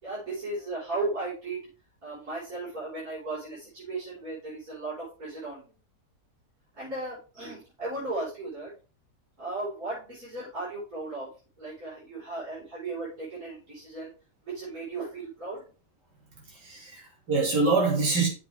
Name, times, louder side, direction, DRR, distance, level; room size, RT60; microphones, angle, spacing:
voice 1, 0.0-1.6 2.0-5.7 6.8-8.7 9.4-11.3 11.6-14.1 14.4-15.6, right 2 dB, 55° right, -10 dB, 5.7 m, -36 dB
voice 2, 16.4-18.3, right 3 dB, 90° right, -2 dB, 3.2 m, -25 dB
7.5 x 7.1 x 3.6 m, 0.34 s
omnidirectional pair, 1.8 m